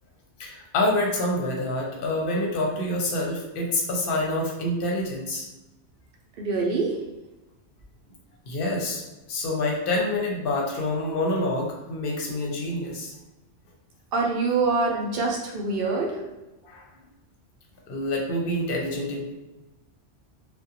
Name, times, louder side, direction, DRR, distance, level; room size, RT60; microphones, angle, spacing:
voice 1, 0.4-5.4 8.5-9.0 9.3-13.1 16.6-16.8 17.9-19.3, left 1 dB, 55° left, -1 dB, 0.7 m, -27 dB
voice 2, 6.4-7.0 14.1-16.2, right 3 dB, 60° right, -1 dB, 0.7 m, -25 dB
2.4 x 2.2 x 2.7 m, 1.0 s
omnidirectional pair, 1.2 m